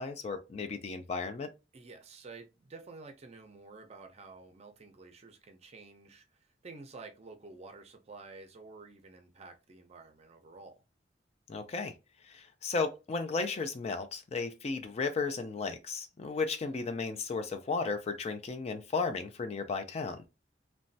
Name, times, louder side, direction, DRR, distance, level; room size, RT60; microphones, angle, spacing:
voice 1, 0.0-1.5 11.5-11.9 12.3-20.3, left 4 dB, 35° left, 0.4 m, -34 dB
voice 2, 1.7-10.8, right 3 dB, 35° right, 0.5 m, -50 dB
3.0 x 2.2 x 2.6 m
head